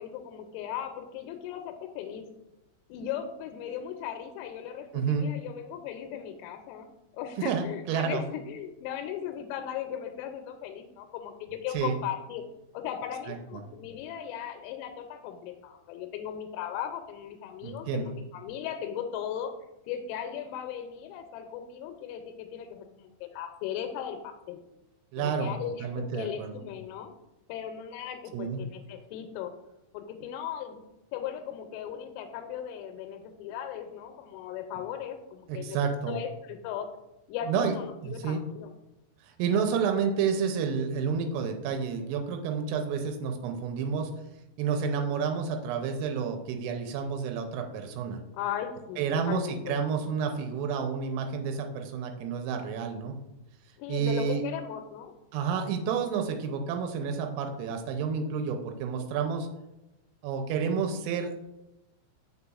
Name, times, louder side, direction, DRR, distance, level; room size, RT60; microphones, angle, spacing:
voice 1, 0.0-2.3 2.9-6.9 7.1-12.4 12.7-19.5 19.9-24.6 25.2-27.1 27.5-29.5 29.9-30.8 31.1-35.8 36.1-36.9 37.3-38.7 48.3-49.8 53.8-55.1, left 9 dB, 90° left, 5 dB, 3.2 m, -37 dB
voice 2, 4.9-5.3 7.4-8.2 11.7-12.0 17.6-18.2 25.1-26.6 28.3-28.7 35.5-36.2 37.5-37.7 38.0-38.4 39.2-44.1 44.6-48.2 49.0-53.2 53.9-54.4 55.3-59.5 60.2-61.4, right 6 dB, 90° right, 5 dB, 3.3 m, -30 dB
6.8 x 6.7 x 2.4 m, 0.92 s
omnidirectional pair, 5.8 m